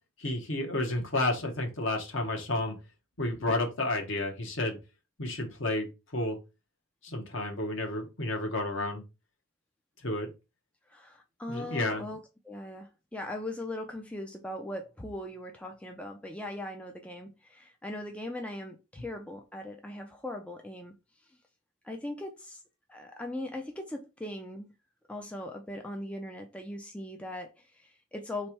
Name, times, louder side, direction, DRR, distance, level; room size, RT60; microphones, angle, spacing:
voice 1, 0.2-2.8 3.2-4.8 5.2-6.4 7.0-9.0 10.0-10.3 11.5-12.0, left 2 dB, 60° left, 1.1 m, -31 dB
voice 2, 10.9-21.4 21.8-22.6 22.9-24.8 25.1-28.5, left 1 dB, 5° left, 0.4 m, -40 dB
3.5 x 3.2 x 4.5 m
head